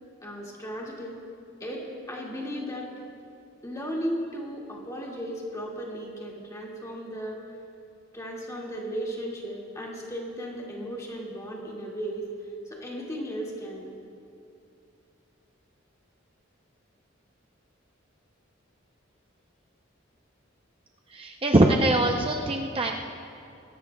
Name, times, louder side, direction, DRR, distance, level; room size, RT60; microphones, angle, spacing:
voice 1, 0.2-1.2 1.6-2.9 3.6-7.4 8.1-12.3 12.7-13.9, equal, 15° left, -3 dB, 2.1 m, -35 dB
voice 2, 21.1-22.9, right 2 dB, 30° right, 1 dB, 0.6 m, -22 dB
21.0 x 16.5 x 2.3 m, 2.6 s
head